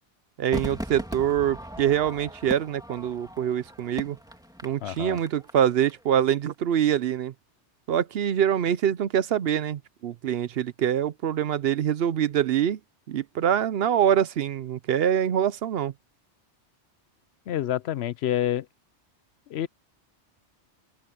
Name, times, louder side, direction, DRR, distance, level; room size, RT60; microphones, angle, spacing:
voice 1, 0.4-4.2 4.6-7.3 7.9-12.8 13.1-15.9, right 9 dB, 65° right, 0.8 m, -25 dB
Crowd / Fireworks, 0.5-5.9 6.2-6.3, equal, 5° right, 2.9 m, -38 dB
voice 2, 4.8-5.2 17.5-18.7 19.5-19.7, left 11 dB, 70° left, 0.8 m, -27 dB
open air
omnidirectional pair, 1.2 m